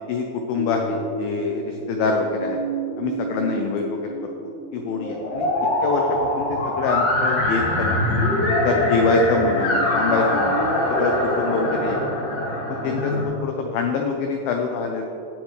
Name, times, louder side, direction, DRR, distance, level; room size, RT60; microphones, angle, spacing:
voice 1, 0.1-2.6 3.0-4.1 4.7-5.5 5.8-8.0 8.6-12.2 12.7-15.0, left 4 dB, 85° left, 3 dB, 2.1 m, -25 dB
sound 1, 0.5-13.2, left 1 dB, 50° left, 3.4 m, -24 dB
Motorcycle, 8.6-12.3, right 1 dB, 30° left, 1.9 m, -34 dB
17.0 x 7.4 x 3.2 m, 2.7 s
omnidirectional pair, 5.0 m